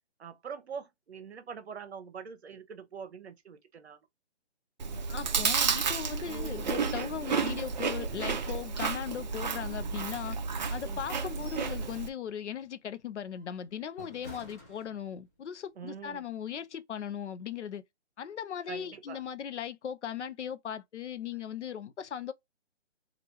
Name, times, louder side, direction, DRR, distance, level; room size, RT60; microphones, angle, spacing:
voice 1, 0.2-4.0 6.3-6.7 10.9-11.0 15.8-16.2 18.7-19.2, right 6 dB, 65° right, 0.8 m, -44 dB
Chewing mastication, 4.8-12.1, right 5 dB, 40° right, 0.5 m, -32 dB
voice 2, 5.1-10.4 10.7-17.8 18.2-22.3, left 9 dB, 80° left, 0.6 m, -38 dB
sound 1, 6.8-7.1 7.5-7.6 8.1-8.9 9.4-10.4 11.0-11.8 12.2-12.4 13.0-15.4 15.8-16.0, equal, 15° left, 0.5 m, -53 dB
2.9 x 2.5 x 3.1 m
hypercardioid pair, 150°, 34 cm